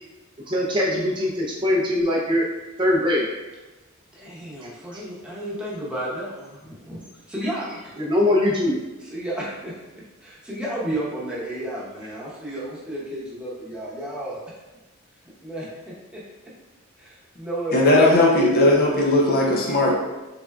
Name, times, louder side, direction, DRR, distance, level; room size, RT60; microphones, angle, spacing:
voice 1, 0.5-2.4 2.8-3.3 4.9-5.0 8.0-8.8, left 1 dB, 25° right, -4 dB, 0.5 m, -21 dB
voice 2, 4.1-7.9 9.0-14.4 15.4-16.2 17.0-18.1, right 1 dB, 5° right, -8 dB, 0.9 m, -32 dB
voice 3, 17.7-20.0, left 2 dB, 45° left, -2 dB, 0.6 m, -17 dB
3.6 x 3.4 x 2.3 m, 1.1 s
head